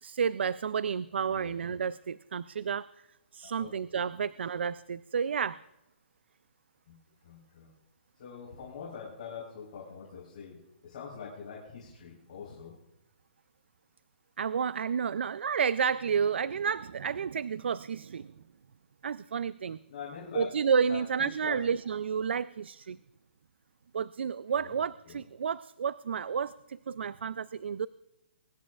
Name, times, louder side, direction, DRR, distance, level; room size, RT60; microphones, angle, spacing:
voice 1, 0.0-2.9 3.3-5.6 14.4-18.3 19.0-19.8 20.3-23.0 23.9-27.9, right 6 dB, 80° right, 18 dB, 0.4 m, -31 dB
voice 2, 7.2-7.7 8.2-10.6 10.8-12.8 19.9-20.5 20.9-21.0 21.4-21.6 24.5-24.7 25.0-25.2, left 6 dB, 40° left, -6 dB, 3.9 m, -44 dB
23.5 x 11.0 x 2.4 m, 0.93 s
hypercardioid pair, 180°, 6 cm